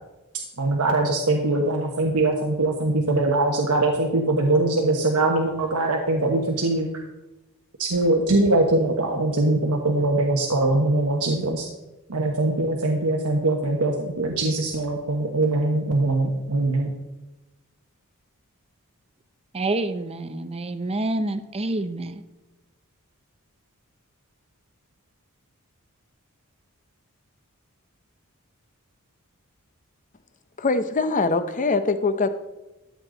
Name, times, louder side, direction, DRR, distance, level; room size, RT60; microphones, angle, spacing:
voice 1, 0.6-6.9 7.8-11.6 12.1-16.9, right 2 dB, 90° right, 1 dB, 1.2 m, -22 dB
voice 2, 19.5-22.2, right 2 dB, 25° right, 11 dB, 0.7 m, -27 dB
voice 3, 30.6-32.3, left 3 dB, 35° left, 11 dB, 0.7 m, -22 dB
13.5 x 8.1 x 3.9 m, 1.0 s
head